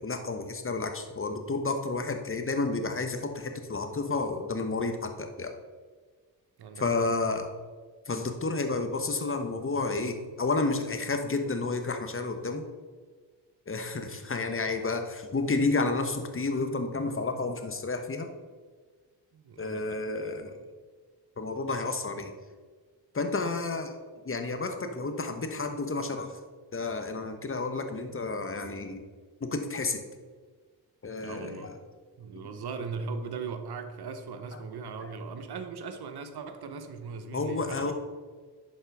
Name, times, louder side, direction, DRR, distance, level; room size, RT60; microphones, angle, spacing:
voice 1, 0.0-5.5 6.8-7.5 8.1-12.6 13.7-18.3 19.6-20.6 21.4-22.3 23.1-24.0 24.2-26.3 26.7-29.0 29.4-30.0 31.0-31.8 34.5-34.6 37.3-37.9, left 3 dB, 25° left, 6 dB, 1.2 m, -31 dB
voice 2, 19.3-20.0 31.2-31.7 32.2-37.9, right 5 dB, 55° right, 8 dB, 1.0 m, -39 dB
11.0 x 4.3 x 3.6 m, 1.5 s
hypercardioid pair, 40°, 46 cm